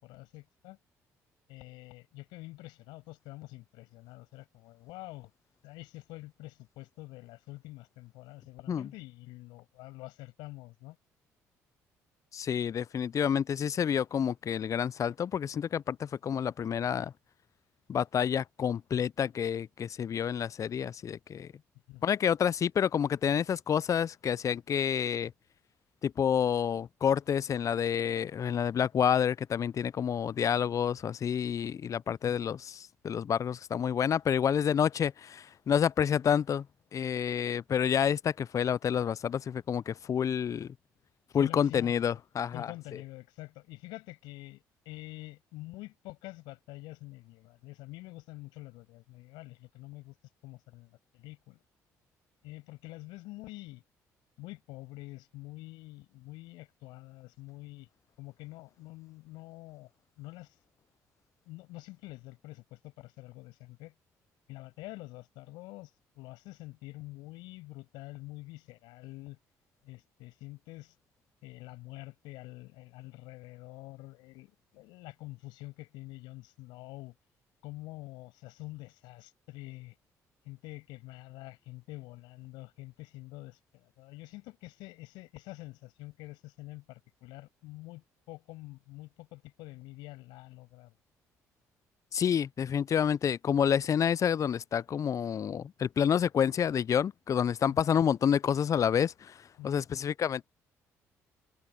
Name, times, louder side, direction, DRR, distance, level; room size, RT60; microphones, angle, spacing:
voice 1, 0.0-0.8 1.5-5.3 5.6-11.0 21.9-22.0 41.3-42.2 42.5-50.2 50.4-51.6 52.4-53.8 54.4-57.9 58.2-59.9 60.2-60.5 61.5-63.9 64.5-65.9 66.2-69.4 69.8-70.9 71.4-77.2 77.6-80.0 80.4-90.9 97.7-97.8 99.6-99.9, left 20 dB, 80° left, 7.7 m, -47 dB
voice 2, 12.3-17.1 17.9-21.5 22.0-25.3 26.0-36.6 36.9-40.7 41.3-42.7 92.1-99.4 99.6-100.5, left 8 dB, 45° left, 0.4 m, -29 dB
hypercardioid pair, 55°, 8 cm